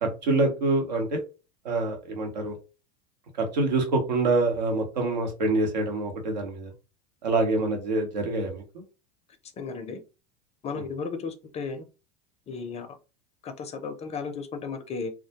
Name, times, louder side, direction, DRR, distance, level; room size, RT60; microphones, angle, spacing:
voice 1, 0.0-1.2 1.6-2.5 3.4-6.7 7.2-8.8 10.7-10.9, right 2 dB, 90° right, 2 dB, 0.9 m, -26 dB
voice 2, 9.6-10.0 10.6-11.8 12.5-12.9 13.4-15.1, left 5 dB, 30° left, 9 dB, 0.4 m, -34 dB
2.2 x 2.1 x 2.8 m, 0.31 s
hypercardioid pair, 90°, 21 cm